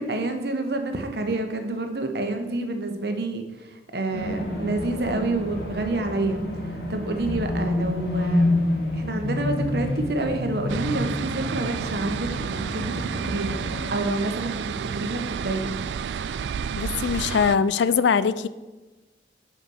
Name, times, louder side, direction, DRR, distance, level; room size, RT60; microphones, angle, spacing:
voice 1, 0.0-6.4 6.9-8.6 8.9-15.8, right 2 dB, 60° right, 1.1 m, -28 dB
sound 1, 4.1-13.9, left 1 dB, 60° left, 1.7 m, -28 dB
sound 2, 10.7-17.6, right 7 dB, 75° right, 0.3 m, -31 dB
voice 2, 16.8-18.5, left 6 dB, 80° left, 0.4 m, -22 dB
6.8 x 5.3 x 6.4 m
head